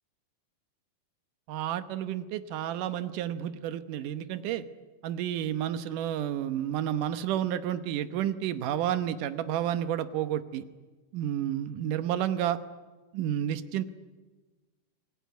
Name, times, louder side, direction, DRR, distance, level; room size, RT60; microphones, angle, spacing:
voice 1, 1.5-4.6 5.0-10.6 11.1-12.6 13.1-13.9, right 11 dB, 80° right, 11 dB, 2.6 m, -30 dB
27.0 x 19.5 x 9.3 m, 1.3 s
omnidirectional pair, 3.7 m